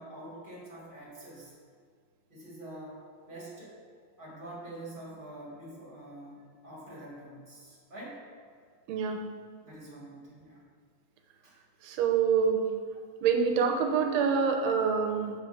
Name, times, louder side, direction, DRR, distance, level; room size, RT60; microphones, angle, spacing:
voice 1, 0.0-1.5 2.3-3.0 3.3-3.8 4.2-8.2 9.6-10.6 11.4-11.5, right 1 dB, 25° right, -5 dB, 1.3 m, -46 dB
voice 2, 8.9-9.2 11.8-12.7 13.2-15.3, right 6 dB, 75° right, 3 dB, 1.9 m, -26 dB
7.6 x 4.3 x 5.5 m, 2.1 s
omnidirectional pair, 3.4 m